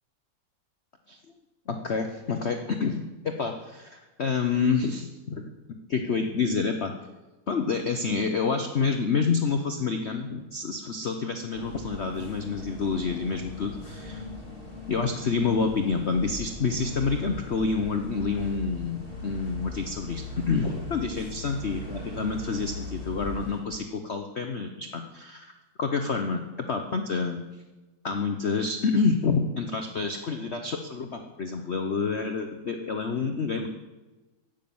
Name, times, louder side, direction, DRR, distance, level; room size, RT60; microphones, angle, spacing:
voice 1, 1.7-5.5 5.9-6.9 7.5-14.2 14.9-25.5 25.8-26.4 26.7-27.4 28.0-33.7, left 4 dB, 55° left, 5 dB, 0.7 m, -28 dB
sound 1, 11.5-23.6, left 2 dB, 25° left, 2.4 m, -39 dB
10.5 x 9.2 x 7.0 m, 1.1 s
omnidirectional pair, 2.3 m